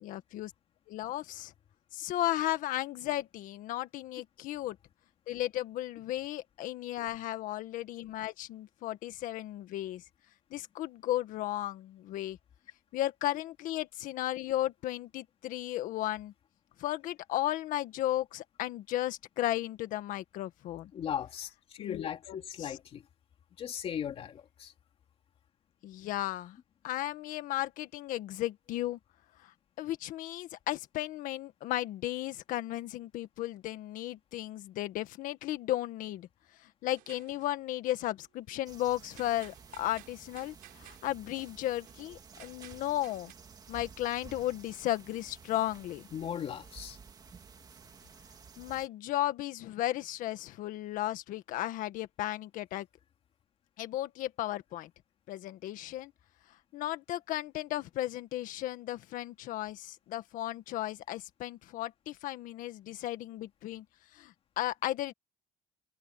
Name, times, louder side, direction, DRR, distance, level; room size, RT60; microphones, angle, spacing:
voice 1, 0.0-0.5 0.9-1.5 1.9-4.8 5.3-10.0 10.5-12.4 12.9-16.3 16.8-20.9 21.8-22.7 25.8-26.6 26.8-29.0 29.4-36.3 36.6-43.3 43.7-46.1 48.6-52.9 53.8-54.9 55.3-56.1 56.7-63.9 64.1-65.1, left 14 dB, 65° left, 1.7 m, -35 dB
voice 2, 20.9-23.0 23.6-24.7 46.1-47.0, left 9 dB, 40° left, 2.7 m, -38 dB
sound 1, 36.9-37.6 39.1-41.1 41.8-42.1 42.4-43.3, right 19 dB, 85° right, 7.6 m, -56 dB
sound 2, 38.7-48.9, right 6 dB, 25° right, 2.1 m, -53 dB
cardioid pair, 155°, 15 cm